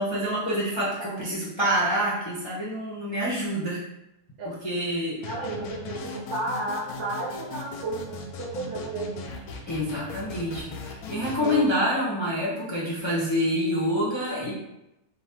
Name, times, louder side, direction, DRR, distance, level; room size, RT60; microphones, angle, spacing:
voice 1, 0.0-3.8 4.4-5.2 9.7-14.5, equal, 30° left, -6 dB, 0.5 m, -27 dB
voice 2, 1.0-1.3 4.4-4.5 5.2-9.3 11.4-11.9, right 2 dB, 65° right, -3 dB, 0.8 m, -33 dB
sound 1, 5.2-11.6, left 3 dB, 75° left, 1.1 m, -39 dB
4.0 x 2.3 x 4.2 m, 0.88 s
omnidirectional pair, 1.7 m